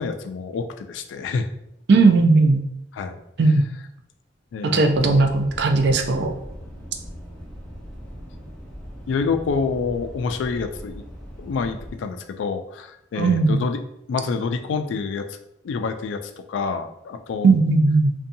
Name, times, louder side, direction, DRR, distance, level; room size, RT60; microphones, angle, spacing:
voice 1, 0.0-1.5 2.9-3.2 4.5-5.2 9.1-11.0 11.4-13.8 14.1-15.4 15.6-17.6, left 4 dB, 85° left, 8 dB, 0.3 m, -27 dB
voice 2, 1.9-2.6 3.4-3.6 4.7-6.3 13.2-13.6 17.4-18.1, right 3 dB, 60° right, 4 dB, 0.4 m, -17 dB
sound 1, 4.9-12.0, equal, 5° left, 0.5 m, -40 dB
2.6 x 2.2 x 2.6 m, 0.79 s
head